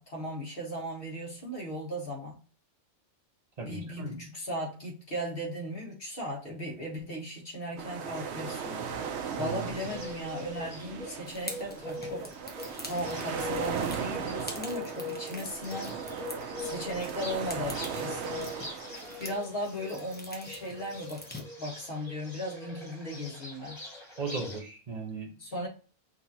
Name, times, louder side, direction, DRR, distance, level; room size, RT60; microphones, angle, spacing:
voice 1, 0.0-2.4 3.6-8.8 9.4-12.3 12.8-16.0 16.6-18.5 19.2-23.8 25.4-25.7, equal, 55° left, -2 dB, 1.8 m, -37 dB
voice 2, 3.6-4.2 9.4-9.9 24.2-25.3, right 4 dB, 40° right, 1 dB, 1.1 m, -37 dB
sound 1, 7.8-19.4, right 7 dB, 80° right, 0.9 m, -38 dB
Bird, 8.1-24.6, left 3 dB, 35° left, 2.1 m, -43 dB
sound 2, 11.3-21.4, left 1 dB, 10° left, 0.7 m, -46 dB
6.0 x 2.8 x 2.8 m, 0.38 s
omnidirectional pair, 1.1 m